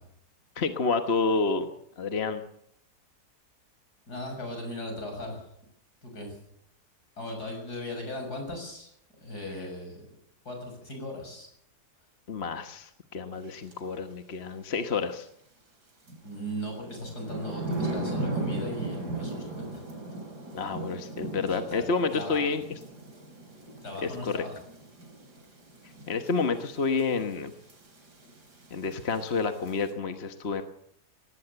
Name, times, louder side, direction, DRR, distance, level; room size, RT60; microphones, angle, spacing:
voice 1, 0.6-1.7 2.0-2.4 12.3-15.3 20.5-22.8 24.0-24.4 26.1-27.5 28.7-30.6, left 4 dB, 40° left, 8 dB, 1.4 m, -29 dB
voice 2, 4.1-5.5 6.0-6.4 7.2-8.9 9.2-10.1 10.5-11.5 16.2-19.8 21.4-21.9 22.1-22.4 23.8-24.5, left 1 dB, 75° left, 3 dB, 7.4 m, -38 dB
sound 1, 13.7-13.8 16.1-29.9, right 2 dB, 85° right, 4.6 m, -38 dB
18.5 x 17.0 x 8.1 m, 0.71 s
omnidirectional pair, 1.7 m